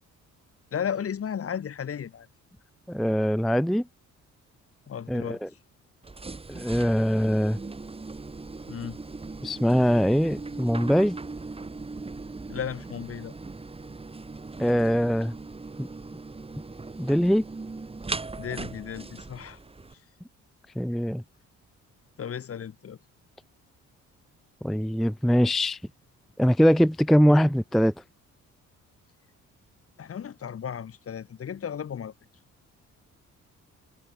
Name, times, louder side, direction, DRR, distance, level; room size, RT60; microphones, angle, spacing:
voice 1, 0.7-2.3 4.9-5.4 8.7-9.0 12.5-13.3 18.4-19.6 22.2-23.0 30.0-32.1, left 8 dB, 50° left, 2.1 m, -34 dB
voice 2, 2.9-3.9 5.1-5.5 6.5-7.6 9.4-11.2 14.6-15.3 15.8-15.9 17.0-17.4 20.8-21.2 24.6-25.8 26.4-27.9, equal, ahead, 0.4 m, -22 dB
sound 1, 6.0-19.9, right 3 dB, 20° right, 1.7 m, -39 dB
cardioid pair, 90°, 30 cm